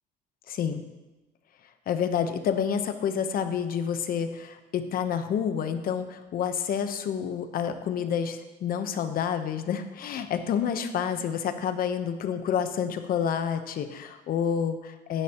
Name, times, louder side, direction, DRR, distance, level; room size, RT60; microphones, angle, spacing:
voice 1, 0.5-0.8 1.9-15.2, left 8 dB, 60° left, 8 dB, 1.1 m, -29 dB
15.5 x 10.0 x 3.1 m, 1.1 s
cardioid pair, 110°, 17 cm